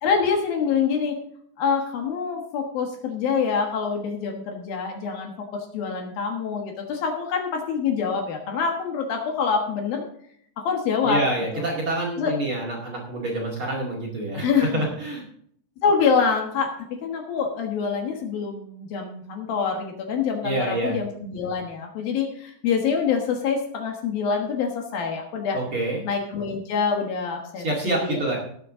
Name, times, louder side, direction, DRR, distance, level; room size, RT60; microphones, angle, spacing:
voice 1, 0.0-1.2 1.6-10.0 10.6-11.2 11.5-11.7 12.2-12.3 14.4-14.9 15.8-25.6 26.0-28.2, left 6 dB, 65° left, 2 dB, 2.9 m, -26 dB
voice 2, 11.0-14.5 14.7-15.2 20.4-21.0 25.5-26.0 27.6-28.4, right 2 dB, 40° right, -2 dB, 2.4 m, -27 dB
18.0 x 7.7 x 3.7 m, 0.65 s
omnidirectional pair, 4.8 m